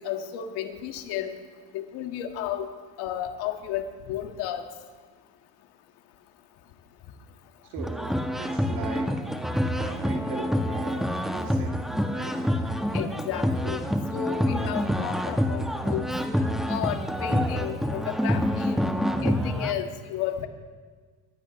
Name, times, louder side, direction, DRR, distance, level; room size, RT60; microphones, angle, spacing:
voice 1, 0.0-1.4 1.7-2.7 3.0-4.7 12.9-13.8 14.1-16.1 16.7-18.7 19.2-20.5, left 10 dB, 85° left, 5 dB, 1.8 m, -33 dB
voice 2, 7.7-9.2 9.7-11.8 12.1-12.5, right 6 dB, 85° right, 1 dB, 2.8 m, -40 dB
sound 1, 7.8-19.7, equal, ahead, 1.1 m, -27 dB
28.5 x 15.5 x 3.1 m, 1.5 s
cardioid pair, 105°, 37 cm